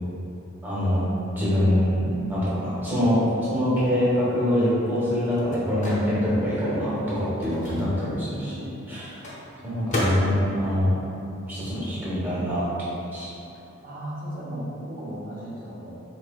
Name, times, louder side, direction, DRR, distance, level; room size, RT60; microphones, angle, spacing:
voice 1, 0.6-1.0 1.4-9.1 9.6-10.9 11.5-12.6 13.1-13.3, equal, 10° right, -10 dB, 1.0 m, -24 dB
Microwave oven, 4.9-12.1 12.4-14.3, left 1 dB, 35° left, 0.7 m, -36 dB
voice 2, 7.9-8.8 13.8-16.0, equal, 45° right, -6 dB, 0.8 m, -36 dB
4.2 x 3.2 x 2.3 m, 2.9 s
head